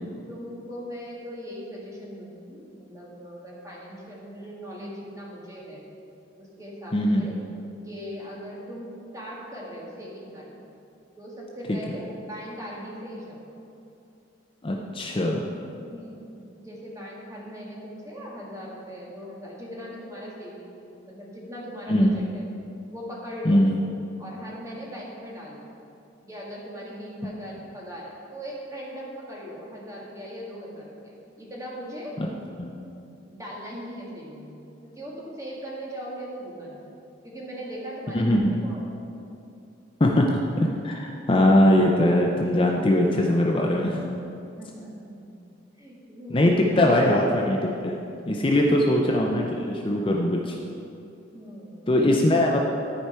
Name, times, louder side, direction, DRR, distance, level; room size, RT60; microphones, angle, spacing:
voice 1, 0.3-5.8 6.4-7.3 7.8-10.6 11.2-13.5 15.8-22.4 22.9-23.6 24.2-25.6 26.2-32.2 33.3-36.8 37.2-38.8 44.6-47.0 48.6-48.7 51.3-52.0, equal, 15° right, -4 dB, 1.7 m, -39 dB
voice 2, 6.9-7.3 11.7-11.8 14.6-15.5 21.9-22.1 23.4-23.7 32.6-32.7 38.1-38.5 40.0-44.0 46.3-48.0 48.3-50.6 51.9-52.6, left 1 dB, 30° left, 0 dB, 0.5 m, -21 dB
13.0 x 4.8 x 4.3 m, 2.7 s
head